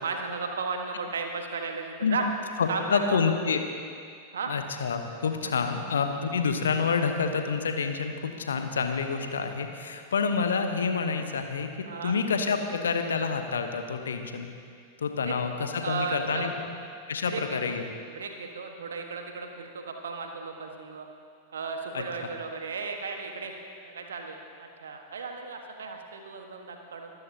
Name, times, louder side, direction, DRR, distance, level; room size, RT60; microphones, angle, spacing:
voice 1, 0.0-2.3 2.7-3.2 4.3-4.5 5.4-5.5 11.9-12.1 15.3-15.4 15.8-16.5 17.2-17.6 18.1-21.1 21.5-23.6 23.8-27.1, right 4 dB, 65° right, 4 dB, 1.5 m, -35 dB
voice 2, 2.6-3.6 4.5-11.7 12.0-14.5 15.0-16.5 17.1-17.8 21.9-22.0, left 5 dB, 70° left, 6 dB, 1.1 m, -28 dB
24.5 x 13.5 x 2.9 m, 2.3 s
figure-of-eight pair, 90°, 0 cm